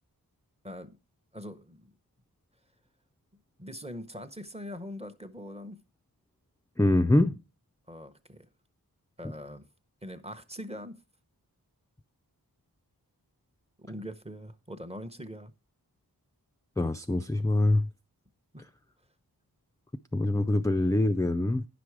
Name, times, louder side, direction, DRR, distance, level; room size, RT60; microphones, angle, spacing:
voice 1, 0.6-1.0 1.3-1.9 3.6-5.8 7.9-8.5 9.2-9.7 10.0-11.0 13.8-15.5 18.5-18.7, equal, 15° right, 0.8 m, -42 dB
voice 2, 6.8-7.4 16.8-17.9 20.1-21.7, left 1 dB, 10° left, 0.4 m, -24 dB
9.9 x 6.0 x 4.7 m
wide cardioid pair, 60°, 38 cm